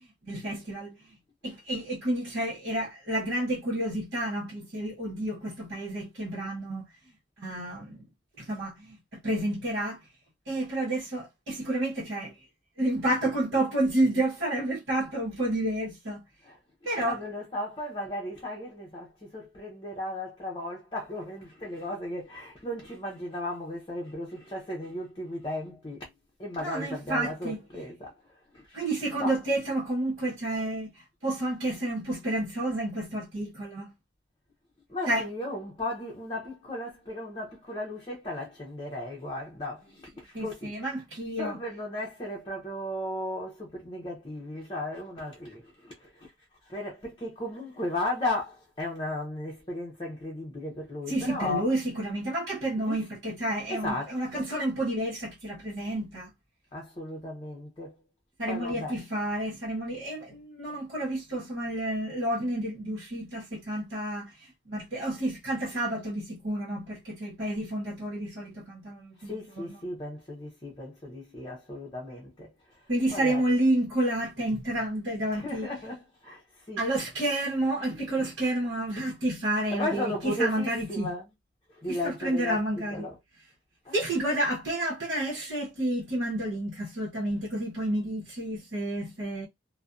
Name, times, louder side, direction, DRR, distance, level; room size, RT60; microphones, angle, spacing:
voice 1, 0.2-1.0 1.4-6.9 7.4-8.0 8.4-9.0 9.2-10.0 10.5-12.3 12.8-16.2 16.8-17.2 26.6-27.6 28.7-30.9 31.2-33.9 35.1-35.3 40.3-41.6 51.1-56.3 58.4-64.3 64.7-69.7 72.9-75.7 76.8-81.1 81.9-83.0 83.9-89.5, right 1 dB, 65° right, 0.9 m, -30 dB
voice 2, 17.0-26.1 26.4-28.1 28.5-28.8 29.2-29.5 34.9-41.0 41.4-46.3 46.6-51.7 52.8-53.1 53.7-54.5 56.7-57.9 58.5-59.0 69.2-72.8 73.1-73.5 75.3-76.9 79.7-81.3 81.7-83.2 83.8-84.0, left 1 dB, 25° left, 0.6 m, -36 dB
2.5 x 2.1 x 2.4 m
head